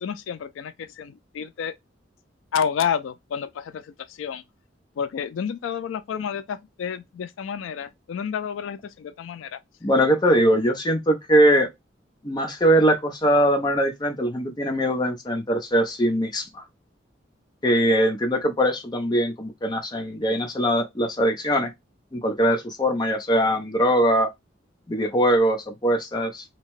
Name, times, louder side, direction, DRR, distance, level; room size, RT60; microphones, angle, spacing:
voice 1, 0.0-1.7 2.5-4.4 5.0-9.6, left 7 dB, 90° left, 0.3 m, -30 dB
voice 2, 9.8-11.7 12.2-16.6 17.6-21.7 22.1-24.3 24.9-26.4, equal, 20° left, 0.5 m, -21 dB
2.8 x 2.1 x 2.9 m
head